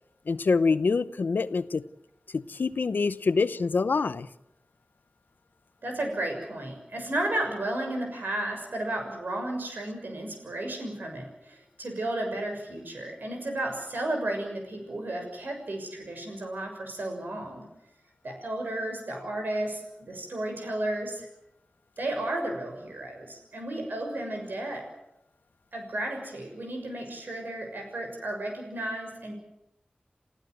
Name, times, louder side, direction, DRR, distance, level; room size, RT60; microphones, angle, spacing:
voice 1, 0.3-1.8 2.3-4.3, left 4 dB, 90° left, 15 dB, 0.7 m, -25 dB
voice 2, 5.8-17.6 18.2-21.3 22.0-24.9 25.7-29.3, right 1 dB, 85° right, 3 dB, 6.6 m, -33 dB
28.5 x 15.5 x 8.0 m, 0.86 s
cardioid pair, 40°, 3 cm